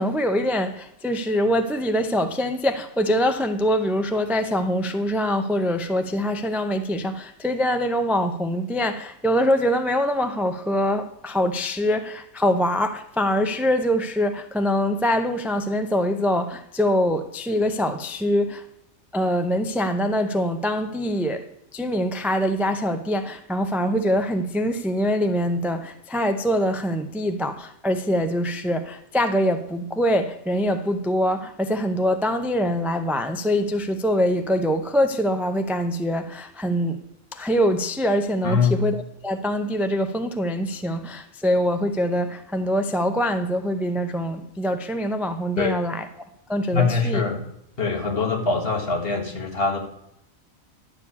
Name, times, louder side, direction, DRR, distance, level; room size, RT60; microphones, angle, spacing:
voice 1, 0.0-18.6 19.1-21.4 21.7-37.0 37.3-46.1 46.5-47.2, equal, ahead, 0.4 m, -24 dB
voice 2, 38.4-38.8 45.6-45.8 46.7-47.4 47.8-49.8, left 4 dB, 50° left, 2.0 m, -23 dB
11.5 x 4.9 x 8.4 m
omnidirectional pair, 1.3 m